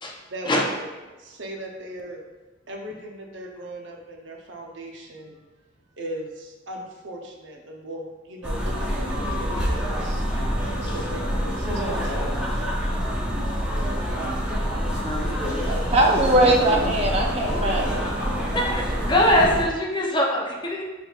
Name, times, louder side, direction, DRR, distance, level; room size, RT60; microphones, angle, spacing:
voice 1, 0.3-0.9 1.2-2.2 2.7-5.4 6.0-10.3 10.8-12.4 15.4-16.5, right 1 dB, 85° right, 1 dB, 0.7 m, -37 dB
sound 1, 8.4-19.6, equal, 5° right, 0.9 m, -26 dB
voice 2, 15.0-15.6 18.5-20.8, left 1 dB, 25° left, -1 dB, 0.6 m, -23 dB
voice 3, 15.9-18.0, right 1 dB, 35° right, 0 dB, 0.6 m, -20 dB
6.1 x 3.5 x 2.4 m, 1.2 s
head